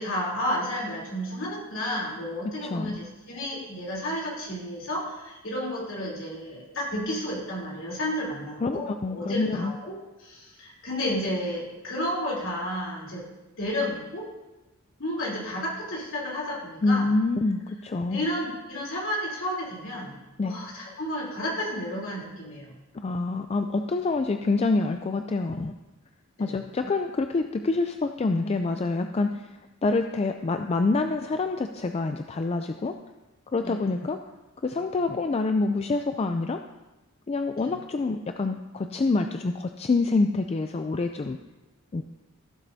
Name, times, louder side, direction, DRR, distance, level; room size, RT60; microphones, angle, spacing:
voice 1, 0.0-9.9 10.2-13.2 13.6-14.2 15.0-17.1 18.1-20.1 20.4-22.7 26.4-26.5 33.6-33.9 37.6-37.7, left 1 dB, 65° left, -4 dB, 3.3 m, -32 dB
voice 2, 2.6-3.0 8.6-9.7 16.8-18.2 20.4-20.5 22.9-25.7 26.4-29.5 29.8-33.0 33.5-34.2 34.6-36.6 37.3-41.4 41.9-42.0, left 3 dB, 30° left, 6 dB, 0.3 m, -26 dB
16.0 x 7.3 x 2.7 m, 1.0 s
head